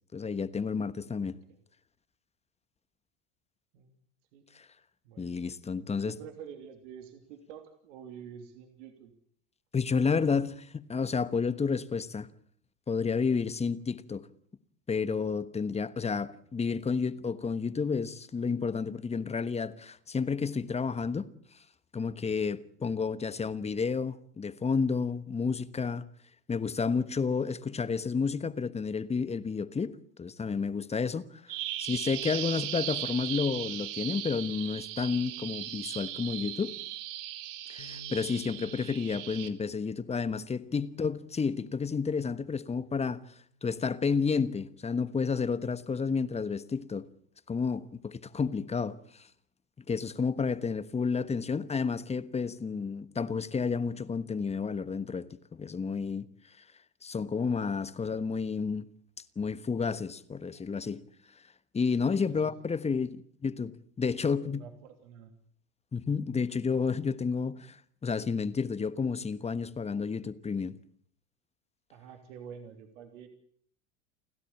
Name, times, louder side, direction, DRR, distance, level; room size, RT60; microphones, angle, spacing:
voice 1, 0.1-1.4 4.5-4.7 5.2-6.1 9.7-12.3 12.9-14.3 14.9-21.2 21.9-26.0 26.5-29.9 30.2-36.7 37.7-43.2 43.6-47.1 47.5-49.3 49.9-56.3 57.0-58.8 59.4-61.0 61.7-64.6 65.9-67.8 68.0-70.8, left 5 dB, 15° left, 1.2 m, -31 dB
voice 2, 1.1-1.6 3.7-3.9 4.3-4.4 5.0-5.3 5.8-9.1 62.1-62.9 64.2-65.3 71.9-73.3, right 7 dB, 80° right, 3.1 m, -48 dB
Bird vocalization bird call bird song, 31.5-39.5, right 13 dB, 60° right, 2.2 m, -38 dB
Bass guitar, 37.8-44.0, left 1 dB, 85° left, 3.5 m, -57 dB
29.5 x 13.0 x 8.7 m
supercardioid pair, 105°, 36 cm